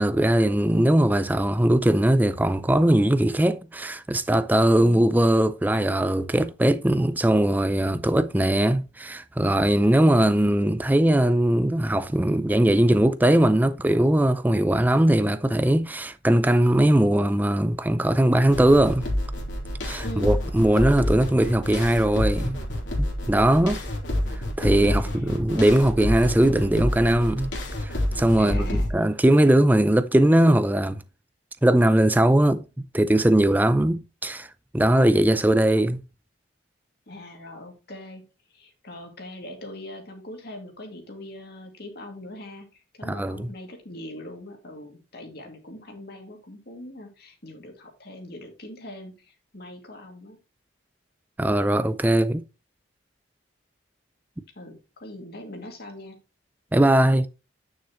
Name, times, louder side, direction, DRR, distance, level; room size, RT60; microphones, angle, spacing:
voice 1, 0.0-19.1 19.8-22.6 23.0-23.8 24.3-27.5 27.8-31.0 31.6-32.7 32.9-36.0 43.0-43.5 51.4-52.4 56.7-57.3, right 1 dB, 10° right, 0.4 m, -20 dB
sound 1, 18.5-28.9, left 1 dB, 70° left, 3.0 m, -28 dB
voice 2, 20.0-20.4 24.9-25.5 28.4-28.9 37.1-38.2 38.5-50.4 54.6-56.2, left 1 dB, 50° left, 2.4 m, -41 dB
9.7 x 6.5 x 3.0 m
head